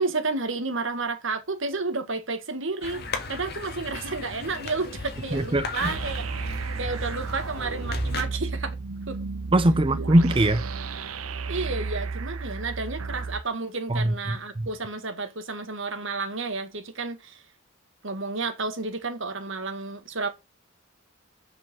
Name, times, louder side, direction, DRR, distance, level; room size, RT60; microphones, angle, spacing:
voice 1, 0.0-8.8 9.1-9.2 11.5-17.4 18.0-20.3, right 3 dB, 65° right, 1.6 m, -31 dB
sound 1, 2.8-8.2, left 3 dB, 50° left, 1.9 m, -36 dB
voice 2, 5.3-5.9 9.5-10.6 13.9-14.7, right 1 dB, 25° right, 0.6 m, -22 dB
sound 2, 5.8-13.4, right 4 dB, 85° right, 0.8 m, -33 dB
7.3 x 6.8 x 5.9 m
head